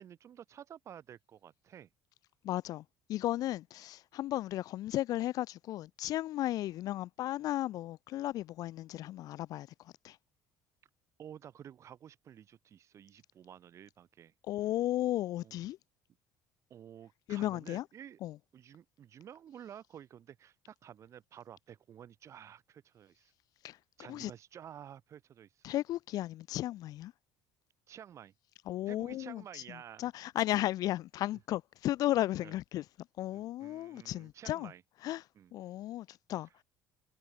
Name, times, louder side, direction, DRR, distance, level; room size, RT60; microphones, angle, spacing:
voice 1, 0.0-1.9 11.2-14.3 15.4-15.7 16.7-18.2 18.5-23.3 24.0-25.6 27.9-28.3 28.9-30.1 32.4-32.5 33.3-34.8 35.3-35.5, right 9 dB, 40° right, 2.5 m, -52 dB
voice 2, 2.4-10.2 14.4-15.8 17.3-17.9 18.2-18.4 23.6-23.8 24.1-24.3 25.6-27.1 28.7-29.6 30.0-32.8 33.2-34.7 35.0-35.2 35.5-36.5, left 14 dB, 60° left, 0.7 m, -35 dB
cardioid pair, 125°, 7 cm